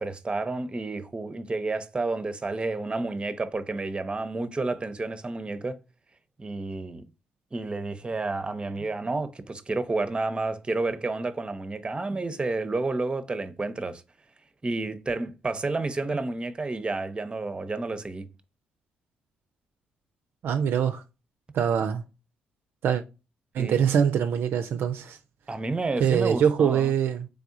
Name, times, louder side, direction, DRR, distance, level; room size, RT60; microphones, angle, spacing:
voice 1, 0.0-5.8 6.4-7.0 7.5-14.0 14.6-18.3 23.6-23.8 25.5-26.9, right 3 dB, 25° right, 0.6 m, -30 dB
voice 2, 20.4-21.0 21.5-22.0 22.8-23.0 23.5-25.2 26.0-27.3, right 8 dB, 65° right, 0.4 m, -23 dB
3.5 x 3.5 x 2.5 m
hypercardioid pair, 55°, 4 cm